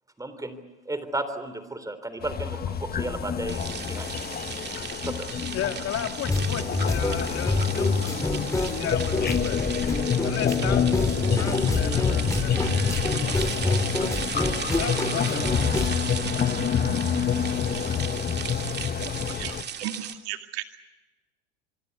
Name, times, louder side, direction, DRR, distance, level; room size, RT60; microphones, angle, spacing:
voice 1, 0.2-0.6 0.9-3.6 3.9-4.1 5.0-5.1, right 2 dB, 10° right, 11 dB, 3.8 m, -33 dB
sound 1, 2.2-19.6, left 7 dB, 30° left, 1.4 m, -28 dB
sound 2, 3.5-20.1, right 7 dB, 30° right, 2.2 m, -36 dB
voice 2, 5.4-9.6 10.2-13.9 14.8-15.4, left 10 dB, 45° left, 7 dB, 2.2 m, -35 dB
sound 3, 6.3-15.9, left 3 dB, 10° left, 3.3 m, -27 dB
voice 3, 19.2-20.6, right 13 dB, 75° right, 7 dB, 2.2 m, -36 dB
26.0 x 23.5 x 8.3 m, 1.2 s
hypercardioid pair, 90°, 33 cm